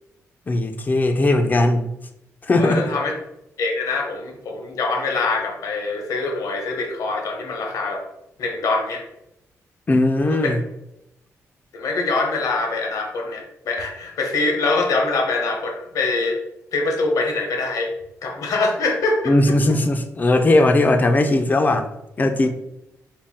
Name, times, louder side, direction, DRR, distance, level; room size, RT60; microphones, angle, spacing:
voice 1, 0.5-1.9 2.4-2.8 9.9-10.6 19.3-21.9 22.2-22.5, left 2 dB, 30° left, 6 dB, 0.5 m, -18 dB
voice 2, 2.6-3.1 3.6-8.0 8.4-9.0 10.2-10.5 11.7-16.4 16.7-17.9 18.2-19.6, left 3 dB, 75° left, 2 dB, 0.9 m, -24 dB
4.1 x 2.2 x 3.6 m, 0.84 s
cardioid pair, 100°, 6 cm